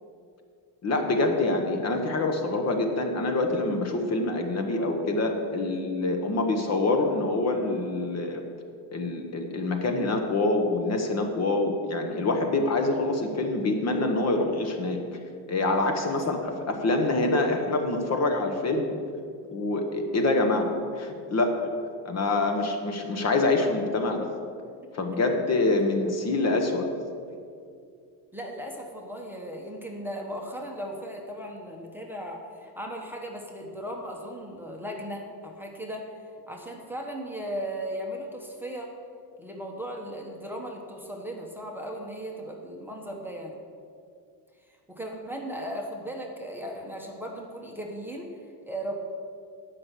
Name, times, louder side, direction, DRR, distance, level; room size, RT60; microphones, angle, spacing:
voice 1, 0.8-8.4 8.9-15.0 15.5-18.9 19.5-21.5 22.0-24.3 24.9-26.9, left 2 dB, 35° left, 4 dB, 1.1 m, -26 dB
voice 2, 28.3-36.1 36.5-38.9 39.4-43.6 44.9-48.3 48.7-48.9, equal, 5° right, 0 dB, 1.1 m, -37 dB
9.6 x 5.9 x 8.1 m, 2.3 s
cardioid pair, 135°, 43 cm